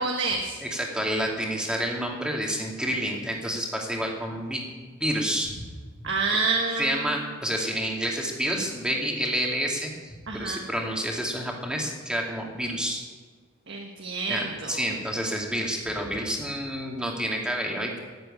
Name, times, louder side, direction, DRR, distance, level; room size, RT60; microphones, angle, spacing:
voice 1, 0.0-0.6 6.0-7.1 10.3-10.6 13.7-14.8, right 3 dB, 60° right, 1 dB, 1.5 m, -28 dB
voice 2, 0.6-5.7 6.3-6.4 6.8-13.1 14.3-18.0, equal, 5° right, -1 dB, 2.4 m, -29 dB
14.5 x 7.9 x 9.7 m, 1.5 s
head